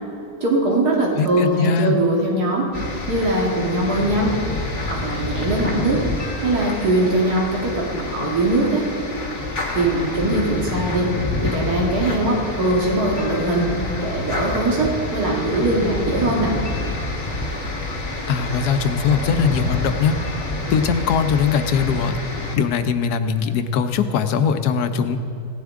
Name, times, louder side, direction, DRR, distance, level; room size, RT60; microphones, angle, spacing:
voice 1, 0.4-2.7 3.1-4.4 4.9-6.0 6.4-8.9 9.8-11.1 11.4-13.7 14.0-16.5, right 2 dB, 80° right, -3 dB, 2.3 m, -21 dB
voice 2, 1.2-2.0 18.3-20.2 20.7-22.2 22.5-25.2, left 6 dB, 80° left, 9 dB, 1.3 m, -21 dB
sound 1, 2.7-22.6, left 2 dB, 50° left, 1.9 m, -28 dB
17.0 x 12.5 x 3.6 m, 2.7 s
omnidirectional pair, 1.6 m